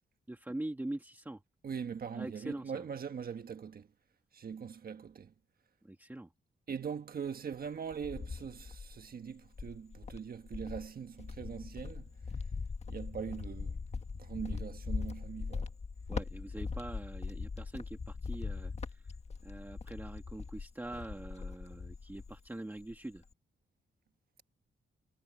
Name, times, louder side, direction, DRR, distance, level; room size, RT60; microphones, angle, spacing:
voice 1, 0.3-1.4 2.1-2.8 5.9-6.3 16.1-19.0 19.4-23.2, right 1 dB, 10° right, 1.8 m, -43 dB
voice 2, 1.6-3.9 4.3-5.3 6.7-12.1 12.9-13.8 14.2-15.7, right 7 dB, 45° right, 1.4 m, -41 dB
Cricket, 7.5-9.1 9.5-22.5 22.8-23.3, left 4 dB, 30° left, 1.5 m, -41 dB
wide cardioid pair, 180°, 20 cm